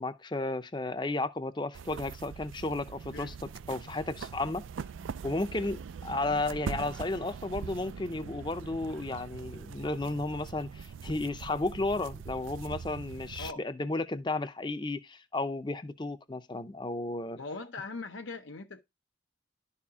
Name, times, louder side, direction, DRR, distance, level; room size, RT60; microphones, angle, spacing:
voice 1, 0.0-4.6 5.2-17.4, left 2 dB, 25° left, 0.6 m, -33 dB
sound 1, 1.7-13.5, right 6 dB, 90° right, 0.4 m, -42 dB
voice 2, 17.4-18.8, left 3 dB, 80° left, 0.7 m, -40 dB
11.5 x 4.4 x 3.6 m
head